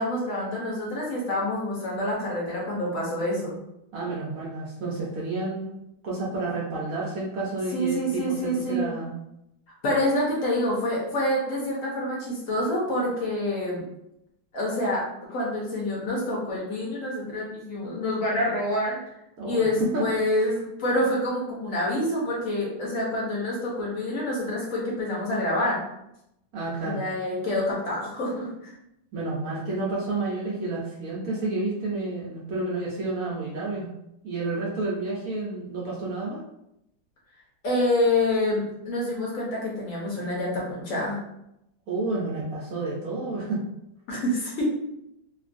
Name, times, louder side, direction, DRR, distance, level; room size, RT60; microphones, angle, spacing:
voice 1, 0.0-3.6 7.7-8.9 9.8-13.8 14.5-15.0 15.3-19.0 19.4-25.8 26.8-28.7 37.6-41.2 44.1-44.6, left 1 dB, 60° left, -4 dB, 0.8 m, -27 dB
voice 2, 3.9-9.1 19.4-19.7 19.9-20.0 26.5-27.0 29.1-33.9 34.2-36.4 41.9-43.6, right 3 dB, 75° right, -5 dB, 0.7 m, -30 dB
2.9 x 2.4 x 2.5 m, 0.83 s
omnidirectional pair, 2.1 m